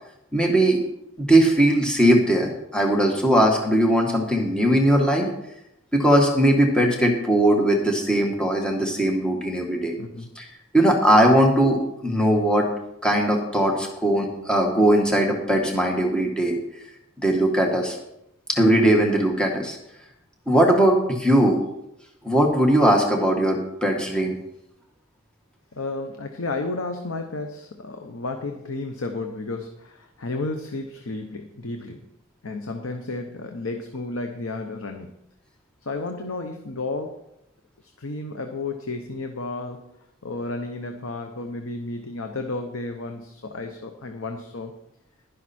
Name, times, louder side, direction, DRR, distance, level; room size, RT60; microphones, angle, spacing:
voice 1, 0.3-0.8 1.2-5.3 5.9-9.9 10.4-10.5 10.7-12.7 13.0-16.6 17.2-18.0 18.5-19.8 20.5-21.6 22.2-24.3, right 1 dB, 5° left, 0 dB, 1.5 m, -19 dB
voice 2, 10.0-10.3 25.7-32.0 32.4-35.1 35.8-37.2 37.8-39.9 40.2-44.7, left 2 dB, 85° left, 5 dB, 1.0 m, -32 dB
11.5 x 11.0 x 4.3 m, 0.84 s
head